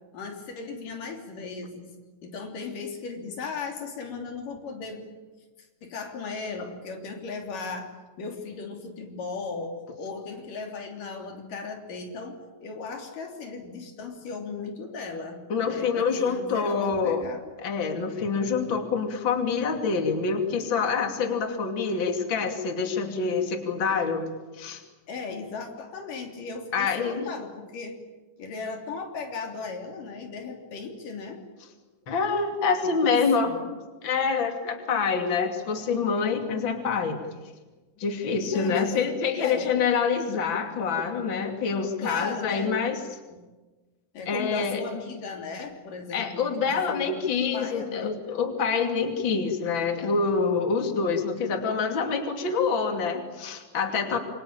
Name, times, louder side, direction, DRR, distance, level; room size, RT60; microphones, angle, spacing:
voice 1, 0.1-1.9 2.2-5.1 5.6-17.4 25.1-28.0 28.4-31.4 33.0-33.7 38.5-38.9 39.4-39.8 42.0-42.8 43.3-43.4 44.1-47.2 47.5-48.2, left 4 dB, 90° left, 3 dB, 4.9 m, -37 dB
voice 2, 15.5-17.2 17.6-24.3 24.6-24.8 26.7-27.3 32.1-33.6 34.0-37.2 38.0-43.0 44.3-44.8 46.1-54.2, left 5 dB, 40° left, 4 dB, 3.2 m, -26 dB
27.0 x 24.0 x 8.9 m, 1.2 s
omnidirectional pair, 3.7 m